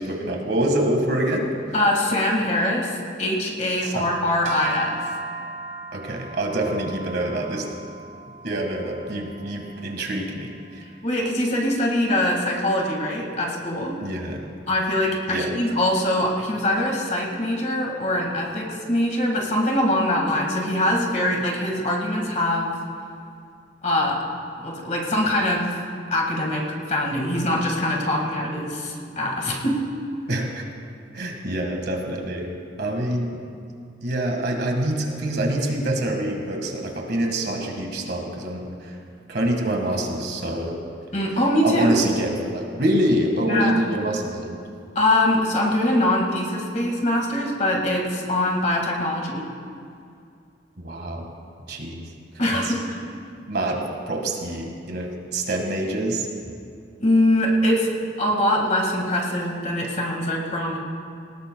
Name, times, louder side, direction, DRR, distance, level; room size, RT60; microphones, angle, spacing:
voice 1, 0.0-1.7 3.8-4.1 5.9-7.7 8.4-10.8 14.0-14.4 15.3-15.5 30.3-30.6 31.1-32.5 32.8-33.4 34.0-39.0 39.3-40.8 41.6-44.6 50.8-51.2 51.7-52.0 52.5-52.7 53.5-56.3, right 1 dB, 60° right, 2 dB, 1.7 m, -26 dB
voice 2, 1.7-5.1 11.0-14.0 14.7-22.7 23.8-24.3 24.6-25.8 26.1-29.9 41.1-41.9 43.5-43.8 45.0-49.4 52.4-53.0 57.0-60.8, left 1 dB, 40° left, 0 dB, 1.9 m, -23 dB
sound 1, 4.4-10.8, right 1 dB, 40° right, 1.5 m, -36 dB
18.5 x 18.5 x 2.3 m, 2.4 s
head